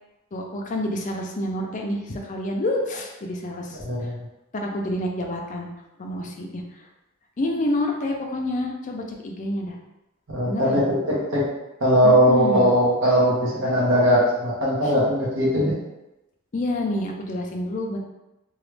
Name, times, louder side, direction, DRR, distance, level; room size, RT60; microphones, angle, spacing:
voice 1, 0.3-4.1 4.5-5.7 6.0-6.6 7.4-9.8 10.5-10.9 12.0-12.7 14.8-14.9 16.5-18.0, left 1 dB, 35° left, 1 dB, 0.4 m, -28 dB
voice 2, 3.8-4.2 10.3-11.5 11.8-15.8, equal, 60° right, -6 dB, 1.1 m, -20 dB
3.0 x 2.3 x 3.2 m, 0.96 s
head